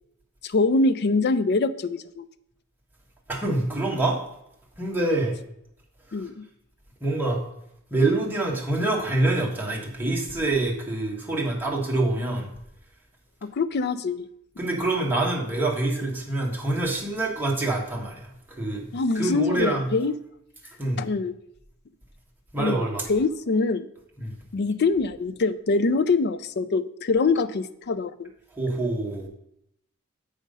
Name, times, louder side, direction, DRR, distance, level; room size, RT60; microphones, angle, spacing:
voice 1, 0.4-2.2 6.1-6.4 13.5-14.3 18.9-20.2 21.0-21.3 22.6-23.9 24.5-28.3, left 3 dB, 50° left, 14 dB, 0.4 m, -24 dB
voice 2, 3.3-4.2 4.8-5.4 6.2-6.3 7.0-7.4 7.9-12.5 14.6-18.8 19.1-19.9 20.8-21.0 22.5-23.1 24.2-24.3 28.5-29.3, right 2 dB, 10° right, -2 dB, 1.6 m, -26 dB
7.5 x 5.1 x 5.3 m, 0.76 s
head